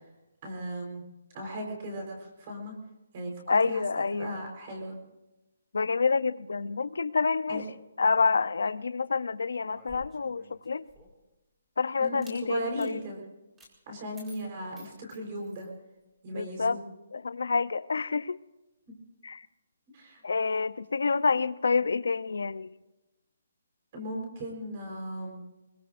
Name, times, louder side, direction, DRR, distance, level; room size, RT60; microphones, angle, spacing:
voice 1, 0.4-1.0 1.3-2.7 3.1-5.0 7.5-7.6 12.0-13.2 13.9-15.7 16.2-16.8 19.9-20.2 23.9-25.4, right 1 dB, 25° right, 1 dB, 4.1 m, -37 dB
voice 2, 3.5-4.4 5.7-7.6 8.0-10.8 11.8-13.0 16.3-16.8 17.1-18.4 19.2-19.4 20.2-22.7, left 4 dB, 85° left, 16 dB, 0.6 m, -28 dB
sound 1, 9.7-11.3 12.0-12.4 12.8-12.9 13.6-13.7 14.1-15.7, equal, 5° right, 2.2 m, -53 dB
24.5 x 21.5 x 2.6 m, 1.0 s
hypercardioid pair, 180°, 0 cm